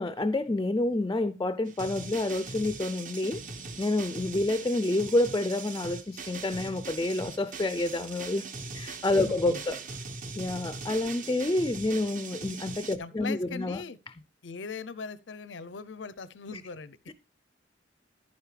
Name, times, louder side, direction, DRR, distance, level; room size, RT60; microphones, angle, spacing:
voice 1, 0.0-3.4 3.8-8.5 8.7-9.8 10.4-13.8 17.1-17.2, left 2 dB, 20° left, 0.5 m, -28 dB
sound 1, 1.7-13.0, right 4 dB, 45° right, 1.0 m, -41 dB
voice 2, 9.2-9.6 13.0-14.0 14.4-17.1, left 4 dB, 80° left, 0.7 m, -40 dB
11.0 x 9.6 x 3.3 m
head